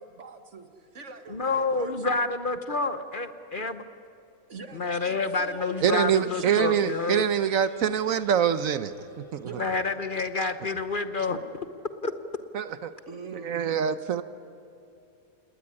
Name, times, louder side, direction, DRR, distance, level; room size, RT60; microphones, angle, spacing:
voice 1, 0.0-2.2 4.5-6.6 9.4-10.0 13.1-13.8, right 4 dB, 55° right, 7 dB, 2.0 m, -43 dB
voice 2, 1.3-3.8 4.7-7.2 9.6-11.4 12.0-12.1, left 3 dB, 40° left, 9 dB, 1.1 m, -28 dB
sound 1, 5.5-12.5, left 3 dB, 75° left, 3.3 m, -53 dB
voice 3, 5.8-9.5 12.5-12.9 13.4-14.2, right 8 dB, 75° right, 12 dB, 1.2 m, -25 dB
29.0 x 19.5 x 9.8 m, 2.8 s
omnidirectional pair, 1.5 m